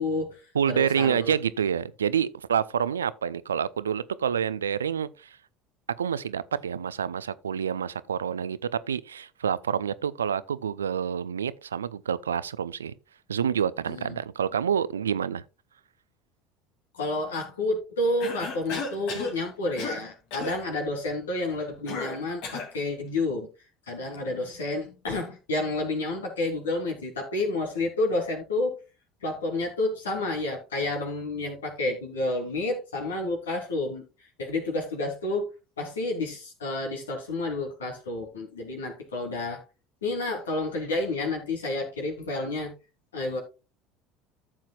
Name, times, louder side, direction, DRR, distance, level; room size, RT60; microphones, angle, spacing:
voice 1, 0.0-0.4 0.7-1.3 13.9-14.1 16.9-23.5 23.9-28.8 29.2-34.0 34.4-35.5 35.8-39.6 40.0-42.7 43.1-43.4, left 2 dB, 80° left, 3.2 m, -30 dB
voice 2, 0.5-5.4 6.0-12.9 13.3-15.4, right 8 dB, 80° right, 0.5 m, -28 dB
Cough, 18.2-19.4 19.8-20.0 20.3-20.6 21.9-22.7, left 4 dB, 60° left, 2.8 m, -34 dB
14.0 x 7.3 x 2.4 m
figure-of-eight pair, 65°, 0 cm